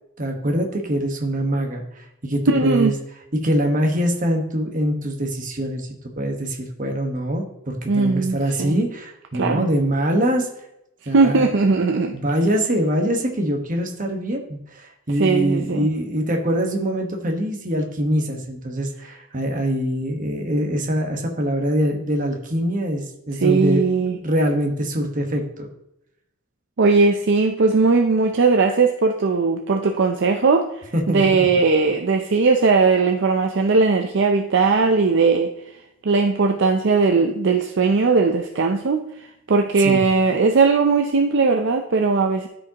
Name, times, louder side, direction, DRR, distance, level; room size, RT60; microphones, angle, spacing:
voice 1, 0.2-2.9 3.3-10.5 11.1-11.5 12.1-23.8 24.1-25.7 30.9-31.5 39.8-40.0, equal, 40° right, 2 dB, 1.3 m, -24 dB
voice 2, 2.5-2.9 7.9-8.8 9.3-9.7 11.1-12.2 15.2-15.9 23.4-24.2 26.8-35.5 36.0-42.5, right 4 dB, 60° right, 4 dB, 0.5 m, -19 dB
13.0 x 5.2 x 2.9 m, 0.83 s
head